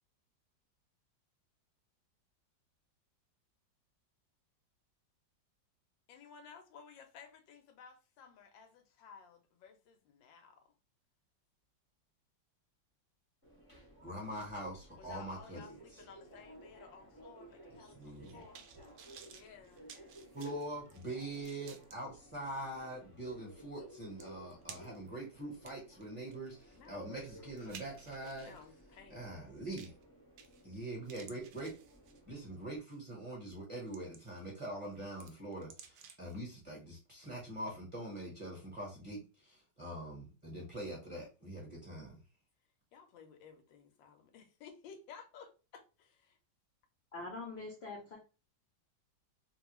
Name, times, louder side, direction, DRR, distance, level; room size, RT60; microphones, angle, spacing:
voice 1, 6.1-10.6 15.0-18.7 19.3-19.9 26.7-27.9 28.2-29.5 42.9-46.4, left 6 dB, 85° left, 1.3 m, -56 dB
Subway metro underground, 13.4-32.8, right 1 dB, 20° left, 0.6 m, -57 dB
voice 2, 14.0-15.6 17.8-18.4 20.3-28.5 29.1-29.9 30.6-31.7 32.3-42.2, right 1 dB, 20° right, 0.9 m, -43 dB
sound 1, 18.0-21.9 22.5-22.6 23.8-23.9 24.2-25.1 25.5-28.6 29.7-30.0 30.4-30.8 31.0-32.4 32.9-33.1 33.6-34.5 34.8-36.3 36.7-36.8, right 7 dB, 70° right, 0.9 m, -56 dB
voice 3, 47.1-48.2, left 3 dB, 55° left, 0.7 m, -44 dB
3.1 x 2.3 x 3.0 m
omnidirectional pair, 2.0 m